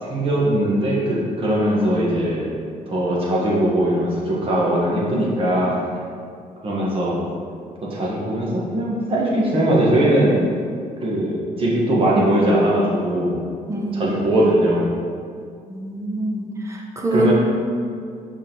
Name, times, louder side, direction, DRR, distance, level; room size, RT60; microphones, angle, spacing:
voice 1, 0.0-2.5 2.9-5.8 6.6-7.2 7.8-10.4 11.0-13.4 13.9-14.9 17.1-17.3, right 1 dB, 40° right, -5 dB, 1.3 m, -20 dB
voice 2, 13.7-14.1 15.7-17.3, right 1 dB, 20° right, 0 dB, 0.7 m, -25 dB
7.0 x 4.8 x 3.0 m, 2.2 s
cardioid pair, 155°, 15 cm